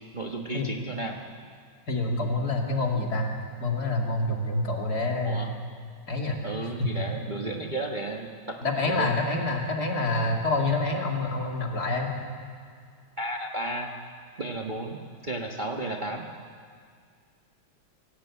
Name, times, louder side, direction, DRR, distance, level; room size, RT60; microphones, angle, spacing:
voice 1, 0.1-1.2 5.2-5.5 6.4-8.6 8.9-9.1 13.2-13.9 14.4-15.0 15.2-16.3, right 2 dB, 25° right, 1 dB, 1.2 m, -33 dB
voice 2, 1.9-3.3 3.6-5.4 6.1-6.5 6.8-7.0 8.6-12.1, left 2 dB, 50° left, 0 dB, 3.1 m, -27 dB
25.0 x 17.0 x 8.6 m, 2.1 s
omnidirectional pair, 2.2 m